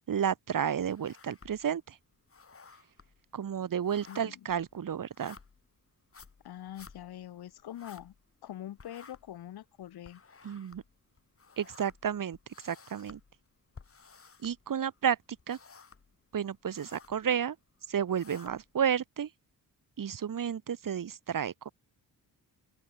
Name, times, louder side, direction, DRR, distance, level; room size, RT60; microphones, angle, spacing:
voice 1, 0.1-2.0 3.3-5.4 10.4-10.8 11.6-12.4 12.6-13.2 14.4-15.2 15.5-15.6 16.3-17.6 17.9-19.3 20.0-21.7, right 8 dB, 60° right, 2.9 m, -31 dB
sound 1, 0.8-1.8 2.1-8.5 8.8-15.0 15.3-16.2 16.5-17.2 17.8-18.8, left 5 dB, 35° left, 4.9 m, -55 dB
voice 2, 4.1-4.4 6.4-8.1 8.4-10.2, left 12 dB, 90° left, 2.4 m, -44 dB
open air
cardioid pair, 105°, 37 cm